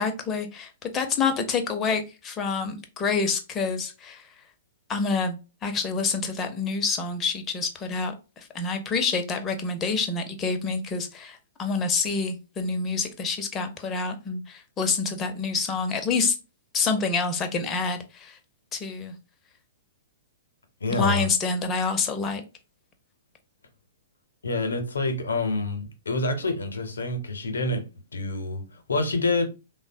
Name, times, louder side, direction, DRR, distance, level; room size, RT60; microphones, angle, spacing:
voice 1, 0.0-4.2 4.9-16.4 16.7-18.4 18.7-19.1 20.9-22.4, left 4 dB, 25° left, 0.6 m, -27 dB
voice 2, 20.8-21.3 24.4-27.8 28.1-29.5, left 2 dB, 75° left, 0.7 m, -27 dB
3.3 x 2.1 x 2.6 m
figure-of-eight pair, 110°, 0 cm